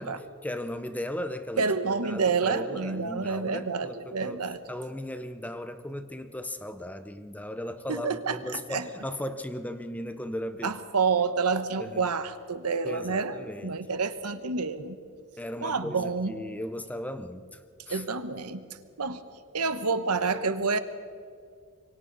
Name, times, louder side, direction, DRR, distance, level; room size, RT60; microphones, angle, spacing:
voice 1, 0.0-1.7 2.0-4.4 4.7-10.8 11.8-12.0 12.8-13.9 15.4-17.6 17.9-18.0, left 1 dB, 5° left, 10 dB, 0.8 m, -37 dB
voice 2, 1.6-4.6 7.9-8.8 10.6-15.0 15.6-16.3 17.9-18.6 19.0-19.2 19.5-20.8, right 4 dB, 90° right, 10 dB, 1.2 m, -28 dB
27.0 x 24.0 x 4.1 m, 2.2 s
head